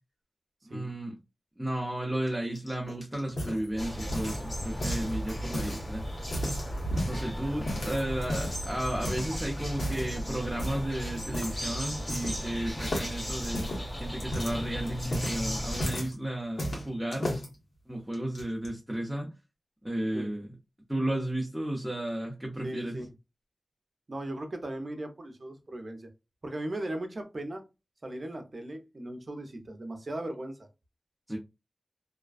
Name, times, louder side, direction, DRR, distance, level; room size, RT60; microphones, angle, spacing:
voice 1, 0.6-1.1 1.6-6.1 7.0-13.7 14.0-17.3 17.9-19.3 19.8-20.5 20.9-23.0 31.3-31.4, right 1 dB, 10° right, 0.6 m, -33 dB
sound 1, 2.6-4.5 4.8-5.8 6.2-7.2 7.7-8.6 9.0-9.3 9.7-10.1 10.6-10.9 11.3-11.6 11.8-12.5 12.8-16.1 16.6-17.5 18.1-18.7, equal, 80° left, 1.0 m, -34 dB
sound 2, 3.8-15.9, equal, 35° left, 1.3 m, -35 dB
voice 2, 22.6-23.0 24.1-26.1 26.4-27.6 28.0-30.7, right 1 dB, 50° right, 0.6 m, -37 dB
2.4 x 2.2 x 2.3 m
wide cardioid pair, 55°, 0 cm